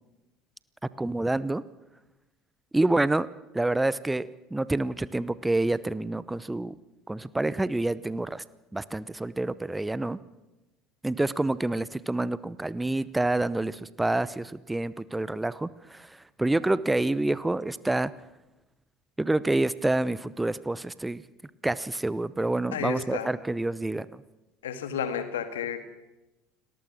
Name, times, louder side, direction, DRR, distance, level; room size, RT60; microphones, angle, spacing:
voice 1, 1.0-1.6 2.7-3.3 3.5-6.8 7.1-8.4 8.7-10.2 11.0-18.1 19.2-21.2 21.6-24.2, right 2 dB, 10° right, 18 dB, 0.8 m, -27 dB
voice 2, 22.7-23.3 24.6-25.8, left 7 dB, 75° left, 9 dB, 2.1 m, -32 dB
30.0 x 19.5 x 6.3 m, 1.0 s
figure-of-eight pair, 60°, 0 cm